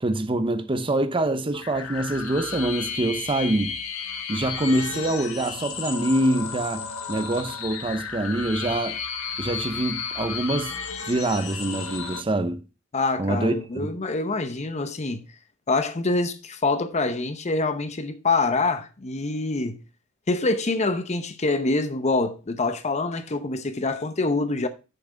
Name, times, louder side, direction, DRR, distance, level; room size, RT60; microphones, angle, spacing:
voice 1, 0.0-3.7 4.3-9.0 9.4-10.8 11.1-12.6 13.2-13.9, right 1 dB, 25° right, 0.7 m, -25 dB
sound 1, 1.5-12.2, left 6 dB, 80° left, 1.3 m, -33 dB
voice 2, 12.9-15.3 15.7-19.8 20.3-24.7, left 3 dB, 35° left, 0.8 m, -25 dB
6.9 x 6.0 x 5.0 m
head